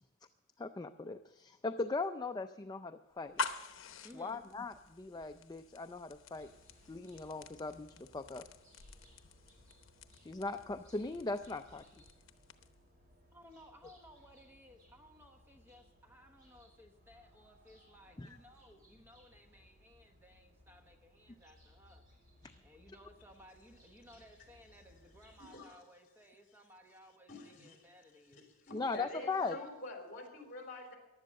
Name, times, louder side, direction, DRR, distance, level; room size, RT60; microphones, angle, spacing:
voice 1, 0.6-3.4 4.2-6.5 6.9-8.4 10.2-11.8 18.2-18.4 28.7-29.6, left 3 dB, 20° left, 8 dB, 0.4 m, -39 dB
sound 1, 3.2-12.9, left 4 dB, 75° left, 0.9 m, -47 dB
voice 2, 4.0-4.4 13.3-22.0 22.6-28.4 29.2-29.3, equal, 10° right, 3 dB, 1.1 m, -59 dB
sound 2, 6.3-25.5, equal, 45° right, 5.7 m, -64 dB
voice 3, 25.4-25.8 27.3-27.8 28.3-31.0, left 2 dB, 45° left, 3 dB, 3.6 m, -47 dB
15.5 x 11.5 x 6.4 m, 1.0 s
head